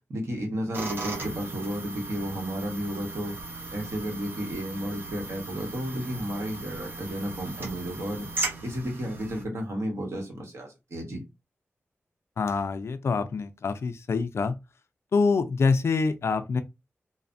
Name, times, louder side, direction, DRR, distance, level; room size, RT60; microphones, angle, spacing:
voice 1, 0.1-3.4 3.7-8.3 8.6-11.2, equal, 70° right, 1.0 m, -32 dB
sound 1, 0.7-9.4, right 3 dB, 45° right, 0.8 m, -37 dB
voice 2, 12.4-14.6 15.1-16.6, left 4 dB, 65° left, 0.3 m, -25 dB
3.2 x 2.0 x 2.5 m
wide cardioid pair, 105°, 5 cm